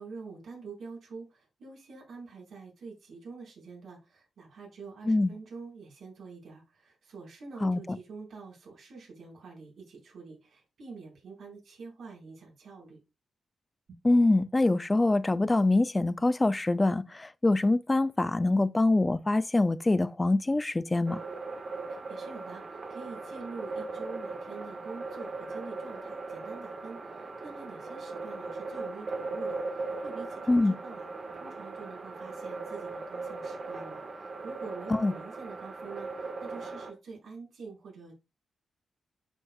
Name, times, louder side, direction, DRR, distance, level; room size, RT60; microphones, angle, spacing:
voice 1, 0.0-13.0 13.9-14.0 21.9-31.1 31.3-38.1, right 4 dB, 65° right, 4.8 m, -46 dB
voice 2, 14.0-21.2 30.5-30.7 34.9-35.1, left 2 dB, 15° left, 0.4 m, -24 dB
sound 1, 21.1-36.9, right 3 dB, 40° right, 1.5 m, -39 dB
12.0 x 5.3 x 2.4 m
wide cardioid pair, 135°, 0 cm